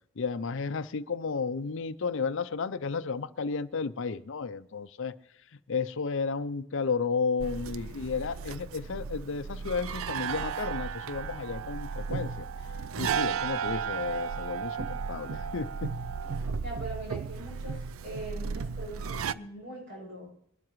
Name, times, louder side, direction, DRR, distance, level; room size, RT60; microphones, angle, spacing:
voice 1, 0.2-5.2 5.7-12.5 13.0-15.9, left 5 dB, 65° left, 13 dB, 0.6 m, -33 dB
sound 1, 7.4-19.3, right 6 dB, 85° right, 0.4 m, -34 dB
voice 2, 16.6-20.3, right 1 dB, 60° right, -4 dB, 7.8 m, -41 dB
23.0 x 12.5 x 3.1 m, 0.70 s
head